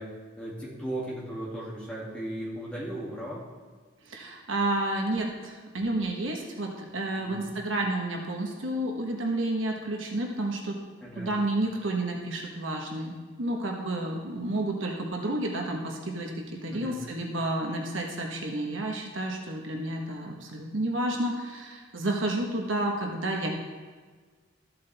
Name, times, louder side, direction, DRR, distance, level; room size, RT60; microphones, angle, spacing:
voice 1, 0.0-3.4 7.1-7.5 11.0-11.3 16.7-17.0, right 1 dB, 5° left, -6 dB, 2.3 m, -37 dB
voice 2, 4.0-10.8 11.2-23.5, right 1 dB, 80° right, 1 dB, 1.2 m, -30 dB
13.5 x 7.6 x 3.4 m, 1.5 s
head